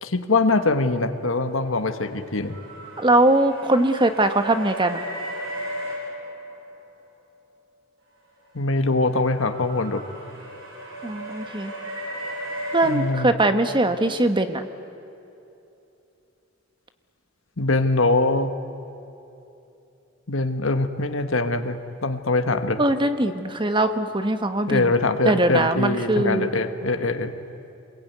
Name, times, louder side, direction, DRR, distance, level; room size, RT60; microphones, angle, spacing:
voice 1, 0.0-2.6 8.5-10.1 12.8-13.3 17.6-18.5 20.3-22.8 24.7-27.3, left 2 dB, 85° left, 8 dB, 1.5 m, -23 dB
sound 1, 1.4-7.0 8.4-13.7, equal, 80° right, 7.6 m, -36 dB
voice 2, 3.0-5.0 11.0-11.7 12.7-14.6 22.8-24.9 25.2-26.5, right 1 dB, 25° right, 8 dB, 1.3 m, -21 dB
28.0 x 21.5 x 9.5 m, 2.8 s
head